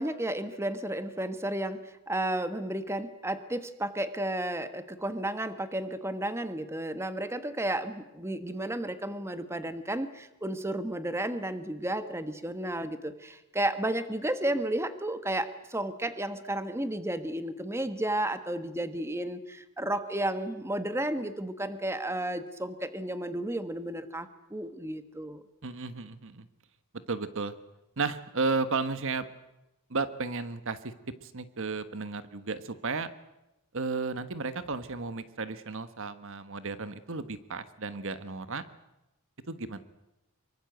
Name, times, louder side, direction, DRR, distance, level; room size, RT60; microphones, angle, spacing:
voice 1, 0.0-25.4, right 1 dB, 10° right, 10 dB, 1.4 m, -32 dB
voice 2, 25.6-26.5 27.1-27.5 28.0-29.2 29.9-30.9 31.2-33.1 33.7-38.6 39.5-39.8, right 4 dB, 60° right, 12 dB, 1.3 m, -33 dB
25.0 x 23.0 x 8.1 m, 0.93 s
head